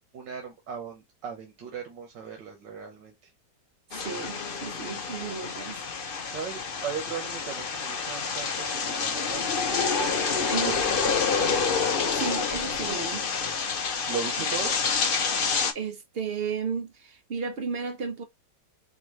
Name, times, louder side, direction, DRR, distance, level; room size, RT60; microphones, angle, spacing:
voice 1, 0.1-3.3 6.2-9.9 10.3-11.5 14.1-14.8, right 7 dB, 85° right, 1.9 m, -38 dB
sound 1, 3.9-15.7, left 5 dB, 60° left, 0.5 m, -28 dB
voice 2, 3.9-5.8 10.5-10.8 12.2-13.3 15.7-18.2, right 5 dB, 55° right, 0.7 m, -33 dB
4.5 x 2.9 x 3.1 m
omnidirectional pair, 1.9 m